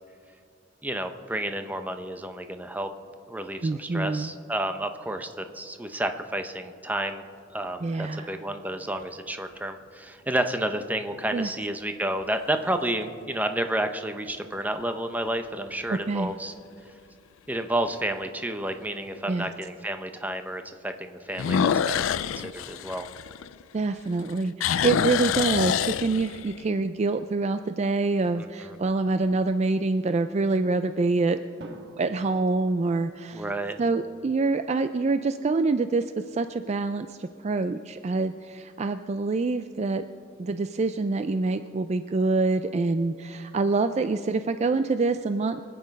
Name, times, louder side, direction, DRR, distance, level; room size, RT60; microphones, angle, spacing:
voice 1, 0.8-2.9 3.3-7.2 7.5-16.5 17.5-22.0 22.4-23.1 28.4-28.8 33.3-33.8, right 1 dB, 10° right, 7 dB, 0.7 m, -31 dB
voice 2, 3.6-4.3 7.8-8.3 11.3-11.5 15.9-16.3 19.3-19.5 23.7-31.4 32.0-33.4 33.8-36.0 36.3-40.0 40.4-45.6, right 3 dB, 35° right, 10 dB, 0.4 m, -26 dB
sound 1, 7.7-8.4 9.0-9.1 14.3-14.8 15.3-15.4 15.9-16.0 16.3-16.4 17.9-18.0 21.3-23.9 24.2-26.6, left 8 dB, 90° left, 0.4 m, -27 dB
Drum, 31.6-33.7, right 1 dB, 60° right, 1.4 m, -48 dB
24.5 x 8.5 x 5.3 m, 2.3 s
head